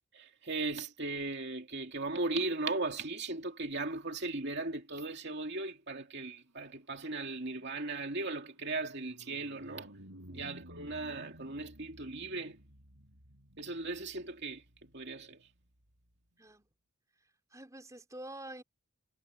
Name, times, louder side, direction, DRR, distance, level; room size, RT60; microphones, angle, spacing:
voice 1, 0.1-9.9 10.3-12.6 13.6-15.5, right 3 dB, 50° right, 2.6 m, -37 dB
sound 1, 6.8-16.1, equal, 80° right, 7.4 m, -56 dB
voice 2, 16.4-16.7 17.5-18.6, right 1 dB, 15° right, 3.7 m, -47 dB
head